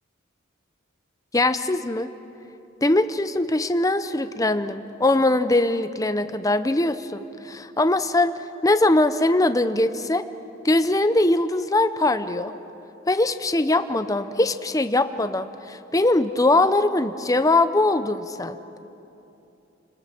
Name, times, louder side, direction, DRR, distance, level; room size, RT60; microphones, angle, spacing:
voice 1, 1.3-2.1 2.8-8.3 8.6-10.2 10.6-12.5 13.1-18.6, left 2 dB, 15° left, 10 dB, 0.7 m, -21 dB
29.5 x 20.5 x 6.0 m, 2.9 s
head